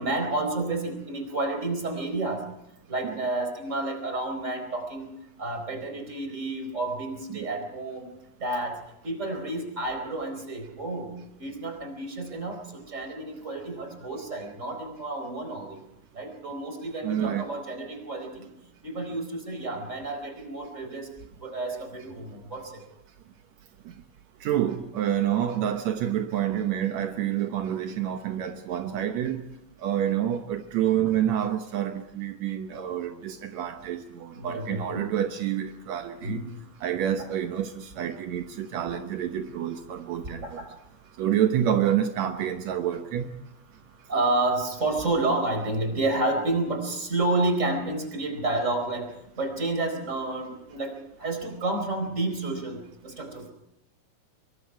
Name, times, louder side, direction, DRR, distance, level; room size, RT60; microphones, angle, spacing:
voice 1, 0.0-2.5 2.9-5.1 5.4-8.1 8.4-8.8 9.0-15.8 16.1-18.5 18.8-21.1 21.4-22.8 34.3-35.1 36.2-36.5 40.4-40.7 44.1-49.1 49.4-53.5, right 2 dB, 20° right, 4.3 m, -30 dB
voice 2, 17.0-17.5 24.4-29.4 29.8-36.4 36.8-40.6 41.2-43.3, right 10 dB, 75° right, 1.6 m, -28 dB
26.0 x 23.5 x 4.7 m
omnidirectional pair, 4.7 m